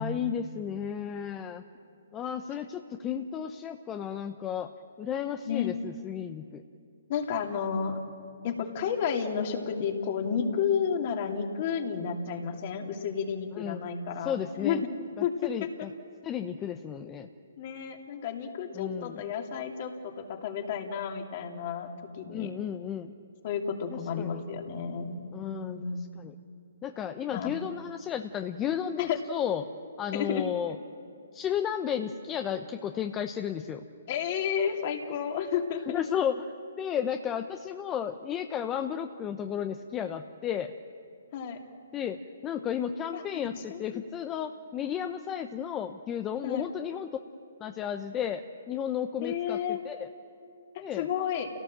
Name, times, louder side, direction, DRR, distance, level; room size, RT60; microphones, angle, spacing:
voice 1, 0.0-1.6 2.1-4.7 5.0-6.6 13.6-13.9 14.2-14.8 15.4-15.9 16.2-17.3 18.7-19.3 22.3-23.2 24.2-24.4 25.3-25.8 26.2-26.3 26.8-29.6 30.0-30.8 31.3-33.8 35.9-36.4 36.8-40.7 41.9-47.1 47.6-50.1 50.8-51.1, left 9 dB, 20° left, 7 dB, 0.8 m, -33 dB
voice 2, 5.4-5.8 7.1-8.0 8.4-14.9 15.2-15.9 17.6-22.5 23.4-26.0 27.3-27.5 29.0-29.2 30.1-30.4 34.1-36.0 41.3-41.6 43.1-43.2 43.7-44.0 46.4-46.7 49.2-49.8 50.7-51.5, left 7 dB, 40° left, 3 dB, 2.7 m, -31 dB
29.0 x 17.5 x 7.5 m, 2.5 s
hypercardioid pair, 140°, 0 cm